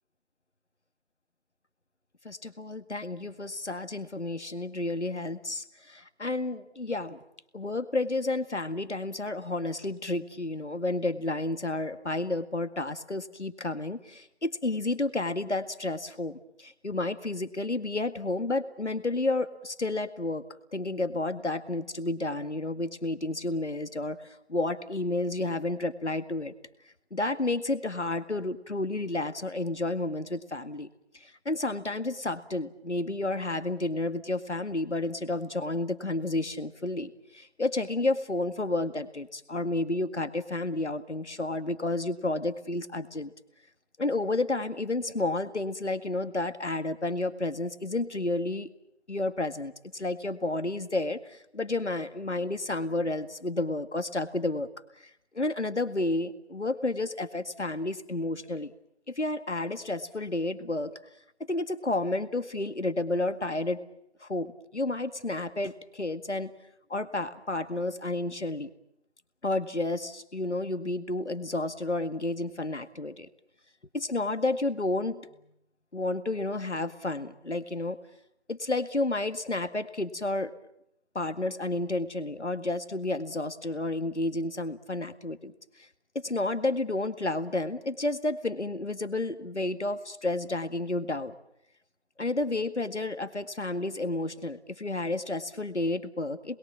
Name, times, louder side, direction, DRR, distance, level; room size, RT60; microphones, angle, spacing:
voice 1, 2.2-7.2 7.5-20.4 20.7-26.5 27.1-30.9 31.1-43.3 44.0-48.7 49.1-54.7 55.3-58.7 59.1-61.0 61.5-63.8 64.2-66.5 66.9-68.7 69.4-73.3 73.9-75.2 75.9-78.0 78.5-80.5 81.2-85.9 86.2-91.3 92.2-96.6, left 2 dB, 85° left, 10 dB, 2.0 m, -31 dB
28.0 x 21.5 x 7.3 m, 0.78 s
figure-of-eight pair, 165°, 34 cm